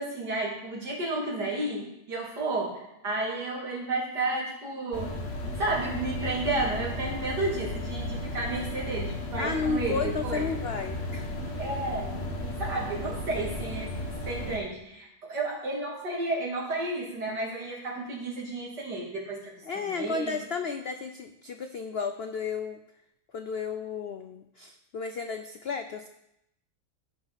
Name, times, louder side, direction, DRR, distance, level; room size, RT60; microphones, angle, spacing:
voice 1, 0.0-1.8 2.1-5.1 5.6-10.5 11.6-12.1 12.6-13.9 14.3-19.4 19.8-20.4, right 2 dB, 75° right, -4 dB, 3.5 m, -32 dB
sound 1, 4.9-14.6, left 1 dB, 50° left, 2.0 m, -34 dB
voice 2, 9.4-11.3 19.6-22.8 23.3-26.1, left 5 dB, 70° left, 7 dB, 0.5 m, -33 dB
17.0 x 5.9 x 4.1 m, 0.81 s
omnidirectional pair, 1.8 m